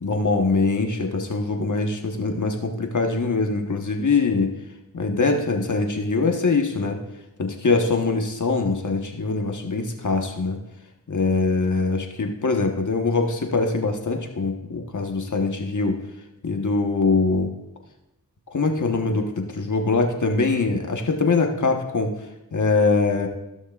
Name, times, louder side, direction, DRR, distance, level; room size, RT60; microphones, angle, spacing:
voice 1, 0.0-4.5 4.9-7.0 7.4-10.6 11.1-16.0 16.4-17.5 18.5-22.1 22.5-23.3, left 3 dB, 55° left, 3 dB, 1.2 m, -23 dB
15.5 x 6.3 x 2.4 m, 0.91 s
cardioid pair, 40°, 35 cm